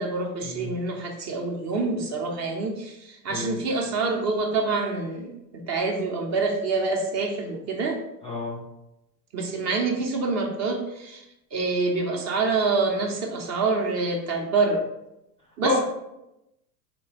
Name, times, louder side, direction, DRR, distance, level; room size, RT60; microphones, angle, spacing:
voice 1, 0.0-8.0 9.3-11.2 11.5-14.8 15.6-15.8, right 3 dB, 35° right, 2 dB, 0.7 m, -26 dB
voice 2, 3.3-3.6 8.2-8.6 15.6-15.8, left 3 dB, 15° left, -3 dB, 0.4 m, -28 dB
3.9 x 2.2 x 3.3 m, 0.88 s
hypercardioid pair, 100°, 50 cm